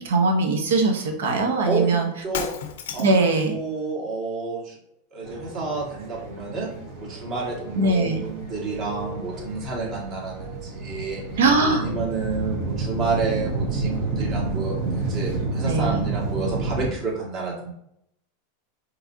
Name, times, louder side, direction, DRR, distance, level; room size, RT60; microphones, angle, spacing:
voice 1, 0.0-2.1 3.0-3.6 7.8-8.2 11.4-11.8 15.6-16.0, right 3 dB, 85° right, 4 dB, 0.9 m, -21 dB
voice 2, 1.6-2.0 2.2-2.5 2.9-4.7 5.1-6.7 7.0-11.4 11.7-17.7, right 4 dB, 40° right, -2 dB, 1.6 m, -30 dB
Shatter, 2.3-3.3, left 8 dB, 80° left, 0.5 m, -32 dB
sound 1, 5.2-16.9, right 3 dB, 65° right, 1.6 m, -30 dB
4.8 x 3.3 x 2.7 m, 0.75 s
supercardioid pair, 125°, 0 cm